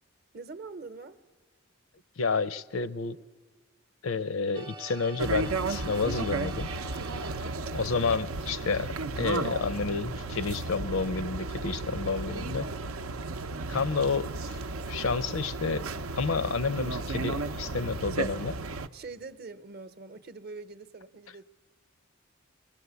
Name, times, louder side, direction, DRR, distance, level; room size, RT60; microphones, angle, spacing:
voice 1, 0.3-1.2 7.2-7.6 12.6-13.0 14.8-14.9 18.9-21.4, right 4 dB, 50° right, 0.8 m, -44 dB
voice 2, 2.2-3.2 4.0-6.7 7.7-12.6 13.7-14.6 14.9-15.9 16.2-18.6, left 4 dB, 75° left, 0.6 m, -30 dB
sound 1, 4.5-8.4, right 2 dB, 20° right, 0.6 m, -46 dB
sound 2, 5.2-18.9, right 3 dB, 90° right, 0.6 m, -34 dB
24.5 x 19.5 x 8.1 m
head